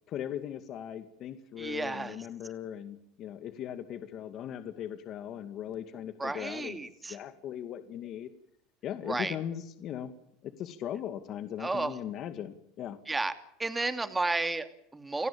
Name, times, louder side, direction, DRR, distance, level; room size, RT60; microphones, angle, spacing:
voice 1, 0.1-8.3 8.8-10.1 10.4-13.0, left 10 dB, 45° left, 9 dB, 2.2 m, -39 dB
voice 2, 1.6-2.2 6.2-7.2 9.1-9.3 11.6-11.9 13.1-13.3 13.6-15.3, right 3 dB, 10° right, 10 dB, 2.6 m, -32 dB
30.0 x 17.5 x 8.8 m, 0.74 s
supercardioid pair, 135°, 0 cm